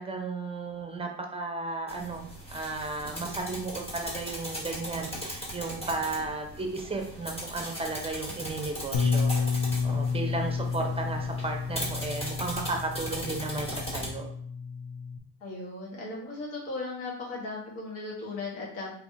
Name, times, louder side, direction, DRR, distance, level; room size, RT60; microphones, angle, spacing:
voice 1, 0.0-14.3, right 3 dB, 10° right, 2 dB, 0.6 m, -34 dB
sound 1, 1.9-14.1, equal, 10° left, 1.0 m, -38 dB
Bass guitar, 8.9-15.2, left 5 dB, 55° left, 0.6 m, -31 dB
voice 2, 15.4-18.9, left 3 dB, 80° left, -3 dB, 1.4 m, -37 dB
3.5 x 3.2 x 2.6 m, 0.63 s
supercardioid pair, 100°, 48 cm